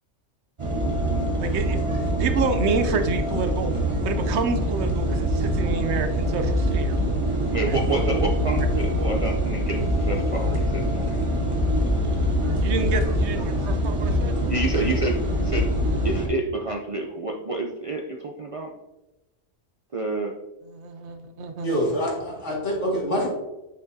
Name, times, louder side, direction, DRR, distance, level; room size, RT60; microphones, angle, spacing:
sound 1, 0.6-16.3, equal, 30° right, 0.9 m, -24 dB
voice 1, 1.4-3.7 4.0-7.0 7.7-7.8 12.6-14.3 20.6-21.8, right 4 dB, 70° right, 8 dB, 0.9 m, -29 dB
voice 2, 7.5-11.3 14.5-15.7 16.0-18.7 19.9-20.3, right 3 dB, 45° right, 1 dB, 0.4 m, -28 dB
voice 3, 21.6-23.3, equal, 75° left, -3 dB, 2.2 m, -25 dB
6.3 x 6.1 x 2.7 m, 0.99 s
omnidirectional pair, 1.2 m